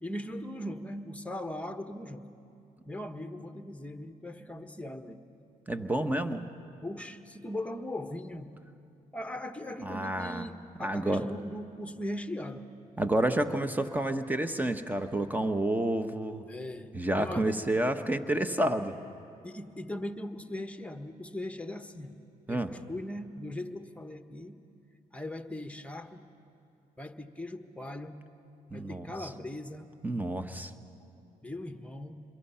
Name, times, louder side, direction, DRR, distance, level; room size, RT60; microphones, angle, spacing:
voice 1, 0.0-2.3 2.8-5.2 6.8-8.5 9.1-12.6 16.4-17.6 19.4-22.2 22.5-24.6 25.1-26.2 27.0-28.2 28.7-29.9 31.0-31.1 31.4-32.2, left 1 dB, 10° left, 7 dB, 1.3 m, -39 dB
voice 2, 5.7-6.4 9.8-10.4 10.8-11.2 13.0-16.4 16.9-18.9 22.5-22.7 28.7-29.3 30.0-30.7, right 1 dB, 10° right, 8 dB, 1.3 m, -29 dB
27.0 x 22.5 x 5.8 m, 2.7 s
supercardioid pair, 70°, 16 cm